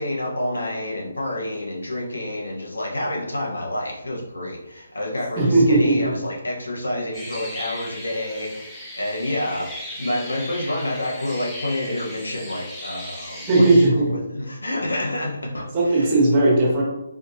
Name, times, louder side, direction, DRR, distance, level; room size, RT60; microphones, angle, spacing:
voice 1, 0.0-13.7 14.1-16.1, left 1 dB, 90° left, -1 dB, 1.1 m, -28 dB
voice 2, 5.4-6.1 13.5-14.1 15.7-16.8, right 2 dB, 30° right, -3 dB, 1.2 m, -17 dB
sound 1, 7.1-13.9, left 1 dB, 10° left, 0.9 m, -37 dB
4.0 x 3.1 x 2.8 m, 0.88 s
figure-of-eight pair, 150°, 0 cm